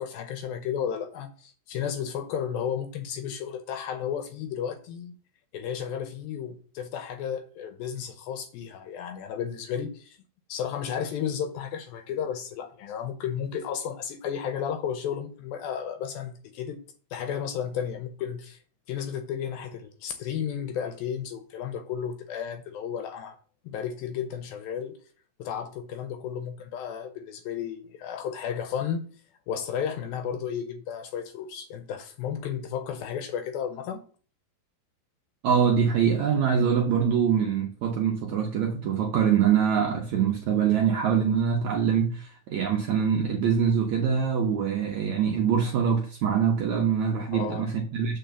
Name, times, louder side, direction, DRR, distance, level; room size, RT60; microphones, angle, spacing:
voice 1, 0.0-5.1 5.5-10.2 10.5-16.8 17.1-18.6 18.9-23.4 23.7-25.0 25.4-29.0 29.5-34.0 47.3-47.7, left 8 dB, 75° left, 2.3 m, -33 dB
voice 2, 35.4-48.2, right 7 dB, 70° right, 1.7 m, -24 dB
7.6 x 4.4 x 6.9 m
omnidirectional pair, 4.7 m